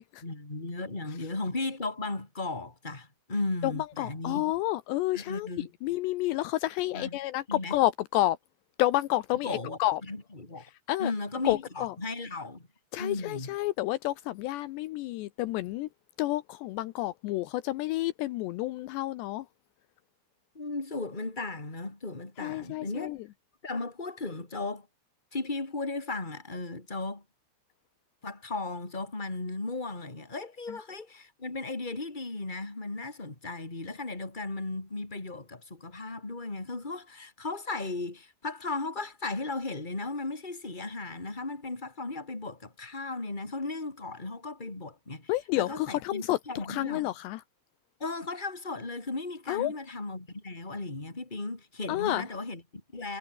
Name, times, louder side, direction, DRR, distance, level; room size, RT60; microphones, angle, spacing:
voice 1, 0.2-4.4 5.1-5.7 6.9-7.2 7.5-7.7 9.4-10.6 11.0-12.7 13.0-13.5 20.5-23.1 23.6-24.9 25.3-27.2 28.2-47.0 48.0-53.2, left 3 dB, 10° left, 3.5 m, -36 dB
voice 2, 3.6-5.5 5.8-8.4 8.8-10.0 10.9-11.1 11.4-11.9 12.9-15.9 16.2-19.5 22.4-23.2 30.7-30.8 45.3-47.4 49.5-49.7 51.9-52.3, left 16 dB, 90° left, 2.5 m, -30 dB
omnidirectional pair, 5.9 m